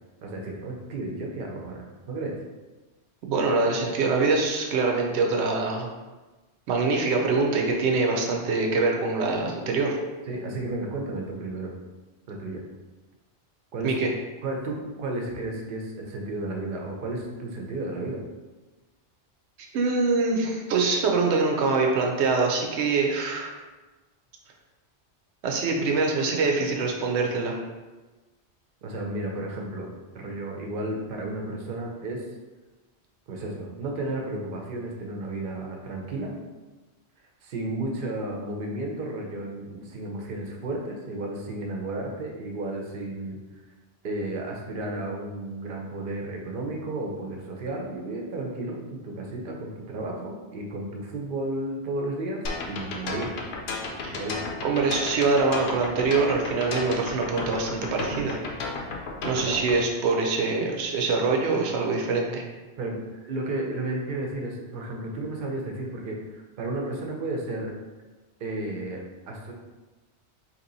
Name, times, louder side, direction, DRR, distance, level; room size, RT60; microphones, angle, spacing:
voice 1, 0.2-2.3 10.3-11.7 12.3-12.6 13.7-13.9 14.4-18.2 28.8-32.3 33.3-36.3 37.4-43.4 44.0-53.4 54.0-54.4 59.3-59.6 62.8-67.7 68.4-69.5, right 2 dB, 55° right, 0 dB, 0.8 m, -33 dB
voice 2, 3.2-5.9 6.7-10.0 13.8-14.1 19.7-23.6 25.4-27.5 54.0-54.2 54.6-58.4 59.2-62.4, right 3 dB, 80° right, 1 dB, 0.9 m, -24 dB
sound 1, 52.5-59.8, left 3 dB, 70° left, 0.8 m, -33 dB
2.9 x 2.8 x 3.9 m, 1.2 s
omnidirectional pair, 1.1 m